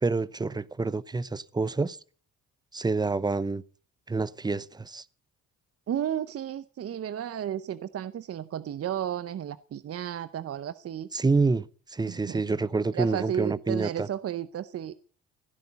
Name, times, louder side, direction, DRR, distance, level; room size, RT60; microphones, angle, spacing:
voice 1, 0.0-2.0 2.7-3.6 4.1-5.0 11.1-14.1, right 3 dB, 15° right, 0.7 m, -27 dB
voice 2, 5.9-11.1 12.1-12.4 12.9-14.9, right 10 dB, 50° right, 0.7 m, -33 dB
16.5 x 10.5 x 6.9 m
cardioid pair, 90°, 30 cm